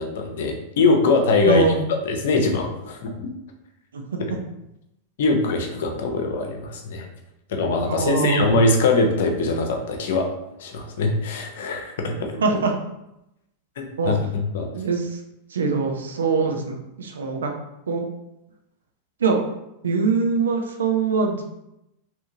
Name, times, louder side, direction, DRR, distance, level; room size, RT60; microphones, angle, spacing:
voice 1, 0.0-1.7 2.0-3.3 4.2-4.3 5.2-7.1 7.5-10.3 10.6-12.6 13.8-14.7, left 3 dB, 55° left, 3 dB, 0.6 m, -22 dB
voice 2, 1.4-1.9 3.9-4.0 7.8-8.6 12.4-12.7 14.0-14.1 14.7-15.1 15.5-17.5 17.9-18.0 19.2-19.4 19.8-21.4, right 4 dB, 70° right, 3 dB, 0.5 m, -22 dB
3.4 x 2.8 x 2.7 m, 0.87 s
figure-of-eight pair, 90°, 0 cm